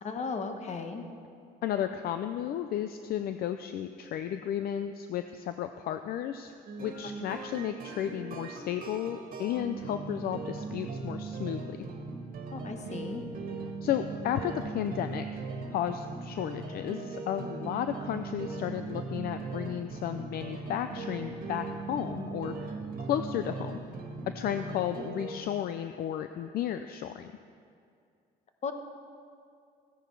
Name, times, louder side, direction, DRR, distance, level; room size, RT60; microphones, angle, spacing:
voice 1, 0.0-1.1 12.5-13.2 28.6-28.7, left 5 dB, 45° left, 6 dB, 1.2 m, -36 dB
voice 2, 1.6-11.8 13.8-15.4 15.7-23.8 24.3-27.3, left 10 dB, 65° left, 9 dB, 0.5 m, -33 dB
sound 1, 6.7-25.4, right 4 dB, 55° right, 1.6 m, -39 dB
15.0 x 9.9 x 4.6 m, 2.3 s
cardioid pair, 110°, 17 cm